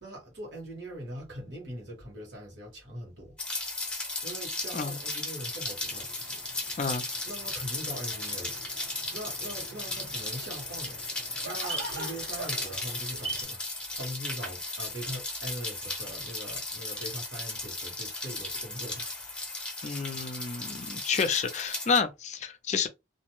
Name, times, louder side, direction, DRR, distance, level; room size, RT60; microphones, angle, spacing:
voice 1, 0.0-3.4 4.2-6.1 7.2-8.7 9.1-11.0 11.4-19.1, equal, 65° right, 1.3 m, -41 dB
Rain, 3.4-22.0, left 2 dB, 5° left, 0.7 m, -36 dB
sound 1, 5.9-13.4, right 2 dB, 90° right, 1.3 m, -43 dB
voice 2, 19.8-22.9, left 5 dB, 35° left, 0.4 m, -29 dB
2.5 x 2.1 x 2.9 m
head